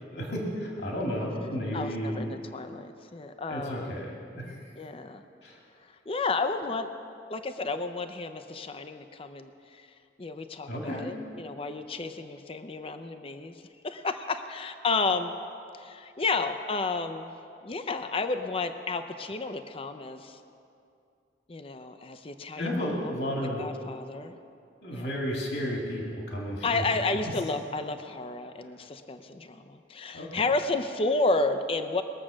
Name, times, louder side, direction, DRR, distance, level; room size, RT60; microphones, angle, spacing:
voice 1, 0.1-2.3 3.5-4.6 5.4-5.6 10.7-11.1 22.6-23.6 24.8-26.8 30.1-30.4, equal, 75° left, -2 dB, 2.2 m, -32 dB
voice 2, 1.7-4.0 4.8-5.2 6.1-6.9 7.3-9.9 10.2-13.5 13.8-15.3 15.7-17.3 17.6-20.4 21.5-23.1 23.6-24.4 24.9-25.1 26.6-32.0, left 3 dB, 30° left, 9 dB, 0.5 m, -31 dB
21.0 x 7.5 x 6.2 m, 2.5 s
head